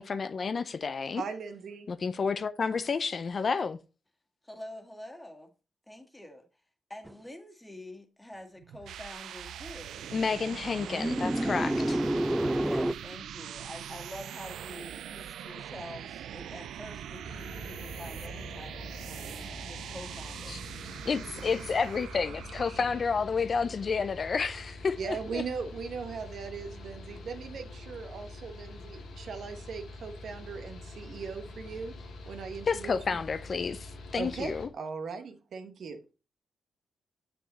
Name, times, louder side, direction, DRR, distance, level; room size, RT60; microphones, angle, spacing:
voice 1, 0.0-1.2 1.9-3.8 10.1-12.0 20.5-20.6 21.1-25.4 32.7-34.7, left 5 dB, 50° left, 0.6 m, -30 dB
voice 2, 1.2-1.9 25.0-31.9 32.2-33.2 34.1-36.0, right 5 dB, 70° right, 1.2 m, -39 dB
voice 3, 4.4-5.5 5.9-6.5 6.9-10.1 10.5-10.6 12.6-21.1, left 1 dB, 10° left, 1.9 m, -47 dB
sound 1, 7.1-7.2 10.8-12.9, right 1 dB, 10° right, 0.4 m, -28 dB
sound 2, 8.6-23.1, right 10 dB, 85° right, 0.4 m, -42 dB
Mechanical fan, 17.2-34.7, left 2 dB, 85° left, 2.4 m, -45 dB
7.0 x 6.1 x 4.1 m
cardioid pair, 70°, 0 cm